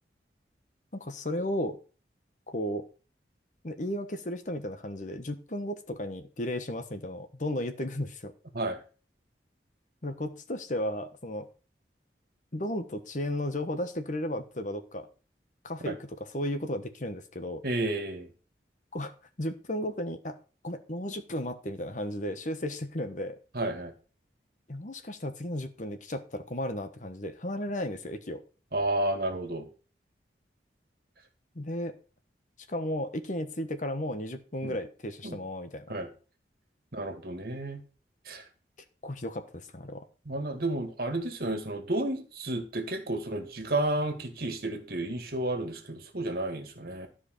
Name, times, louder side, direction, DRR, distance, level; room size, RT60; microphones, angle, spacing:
voice 1, 0.9-1.8 2.5-2.9 3.6-8.3 10.0-11.5 12.5-15.1 15.6-17.6 18.9-19.1 19.4-20.4 20.6-23.4 24.7-28.4 31.5-32.0 32.7-36.0 39.0-40.0, left 1 dB, 45° left, 8 dB, 1.2 m, -34 dB
voice 2, 17.6-18.3 23.6-23.9 28.7-29.7 34.6-34.8 35.2-35.4 35.9-36.1 36.9-37.8 38.3-38.4 40.3-47.1, right 1 dB, 60° right, 6 dB, 2.2 m, -31 dB
13.0 x 5.0 x 6.6 m, 0.37 s
head